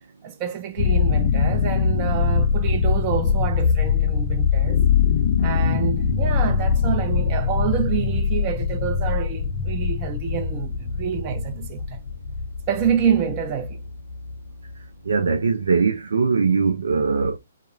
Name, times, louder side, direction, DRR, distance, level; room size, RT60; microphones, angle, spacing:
voice 1, 0.2-4.8 5.4-12.0 12.7-13.8, right 8 dB, 30° right, 0.6 m, -27 dB
sound 1, 0.8-14.7, left 6 dB, 45° left, 0.4 m, -22 dB
voice 2, 15.1-17.4, right 5 dB, 75° right, 0.4 m, -21 dB
2.3 x 2.0 x 2.9 m
hypercardioid pair, 135°, 0 cm